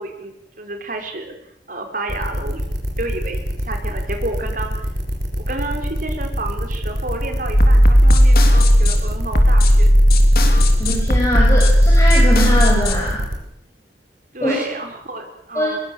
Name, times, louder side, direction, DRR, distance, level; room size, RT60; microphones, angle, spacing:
voice 1, 0.0-1.3 1.7-2.6 3.0-4.9 5.4-10.0 14.3-15.8, right 2 dB, 50° right, 4 dB, 4.6 m, -30 dB
sound 1, 2.1-13.4, equal, 65° right, 6.1 m, -25 dB
sound 2, 7.5-12.9, equal, 55° left, 3.5 m, -13 dB
voice 2, 10.8-13.2 14.4-14.6 15.5-15.7, equal, 15° left, -4 dB, 6.5 m, -21 dB
24.0 x 22.0 x 7.7 m, 0.80 s
head